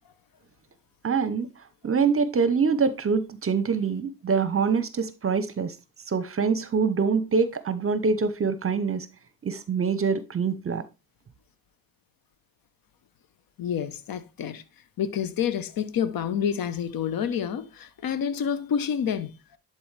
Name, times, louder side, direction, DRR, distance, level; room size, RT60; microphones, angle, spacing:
voice 1, 1.0-1.5 1.8-5.7 6.1-9.1 9.4-10.8, right 5 dB, 30° right, 0.8 m, -25 dB
voice 2, 13.6-14.6 15.0-19.3, left 8 dB, 50° left, 1.0 m, -28 dB
11.0 x 4.0 x 3.3 m
hypercardioid pair, 55°, 43 cm